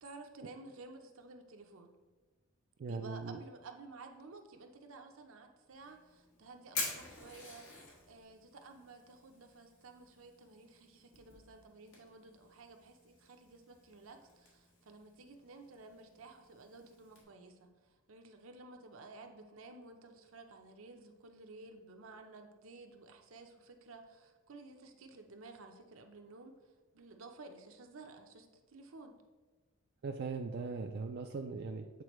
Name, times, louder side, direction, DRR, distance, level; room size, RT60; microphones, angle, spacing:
voice 1, 0.0-1.9 2.9-26.5 26.9-29.2, right 3 dB, 75° right, 4 dB, 0.7 m, -54 dB
voice 2, 2.8-3.4 30.0-32.0, right 4 dB, 50° right, 3 dB, 0.3 m, -40 dB
Fire, 5.7-17.2, left 3 dB, 70° left, 2.0 m, -49 dB
8.2 x 4.3 x 3.1 m, 1.3 s
head